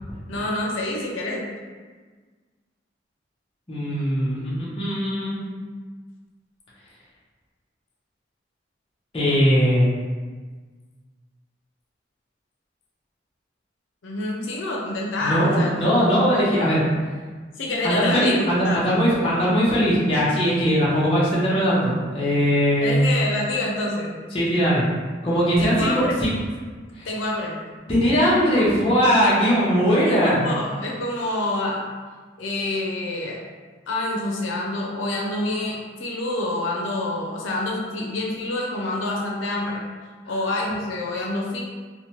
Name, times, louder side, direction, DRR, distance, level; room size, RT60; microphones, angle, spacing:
voice 1, 0.3-1.4 14.0-15.7 17.6-18.8 22.8-24.2 25.6-26.2 27.1-27.6 28.6-28.7 29.2-29.3 30.1-31.8 32.4-33.4 33.9-39.8 40.3-41.6, left 2 dB, 85° left, -3 dB, 0.5 m, -27 dB
voice 2, 3.7-5.4 9.1-9.9 15.2-16.8 17.8-23.0 24.3-24.8 25.2-25.9 26.2-26.3 26.9-27.1 27.9-30.5, equal, 30° left, -8 dB, 0.6 m, -20 dB
3.0 x 2.1 x 2.9 m, 1.5 s
head